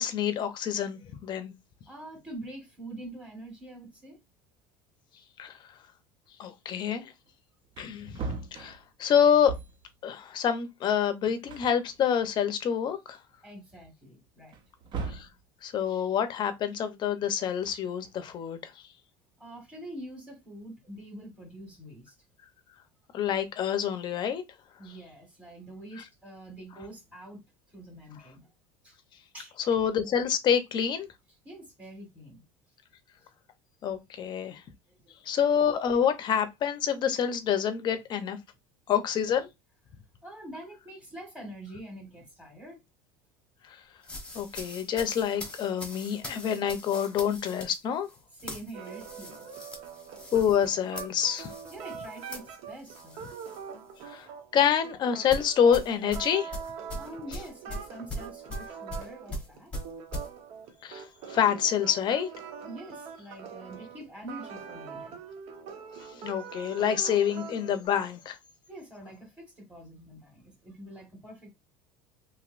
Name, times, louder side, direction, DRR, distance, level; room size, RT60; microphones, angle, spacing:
voice 1, 0.0-1.5 5.4-5.5 6.4-7.1 7.8-9.5 10.0-13.2 15.1-15.3 15.6-18.6 23.1-24.4 29.7-31.1 33.8-34.6 35.3-38.4 38.9-39.5 44.3-48.1 50.3-51.5 54.1-54.3 54.5-56.5 60.8-61.0 61.3-62.3 66.2-68.4, left 8 dB, 35° left, 0.7 m, -27 dB
voice 2, 1.9-4.2 13.4-14.6 19.4-22.1 24.8-27.4 27.7-28.5 28.8-29.0 29.3-29.5 31.4-32.4 34.9-35.1 40.2-42.8 48.3-49.4 51.7-53.2 56.9-59.7 62.7-65.2 68.7-71.5, right 1 dB, 10° right, 1.6 m, -45 dB
Wood, 7.3-7.4 7.6-9.9 11.0-11.1 11.5-12.6 13.1-13.2 14.5-15.4 17.4-18.4, right 4 dB, 40° right, 0.6 m, -40 dB
sound 1, 44.0-53.6 54.0-54.2 55.3-60.3, left 1 dB, 10° left, 1.0 m, -41 dB
sound 2, 48.7-67.9, right 7 dB, 55° right, 0.9 m, -43 dB
3.0 x 2.9 x 2.5 m
supercardioid pair, 135°, 12 cm